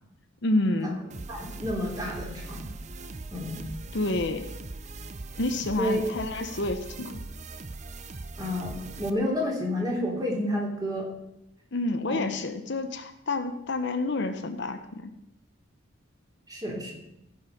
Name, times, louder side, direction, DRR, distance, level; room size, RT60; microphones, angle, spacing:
voice 1, 0.4-1.0 3.9-4.5 5.4-7.2 11.7-15.1, left 2 dB, 60° left, 8 dB, 0.9 m, -29 dB
sound 1, 1.1-9.1, right 3 dB, 35° right, 0.6 m, -40 dB
voice 2, 1.3-2.7 3.3-3.6 5.8-6.0 8.4-11.1 12.1-12.2 16.5-16.9, left 1 dB, 20° right, -2 dB, 3.0 m, -30 dB
15.0 x 5.6 x 6.9 m, 0.87 s
head